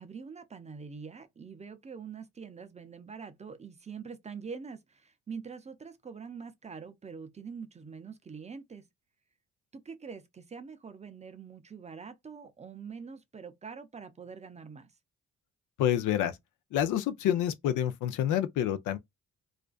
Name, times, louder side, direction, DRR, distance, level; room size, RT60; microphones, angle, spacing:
voice 1, 0.0-8.9 9.8-14.9, right 5 dB, 25° right, 0.4 m, -44 dB
voice 2, 15.8-16.4 16.7-19.0, left 11 dB, 80° left, 0.5 m, -28 dB
2.4 x 2.2 x 2.3 m
cardioid pair, 90°, 30 cm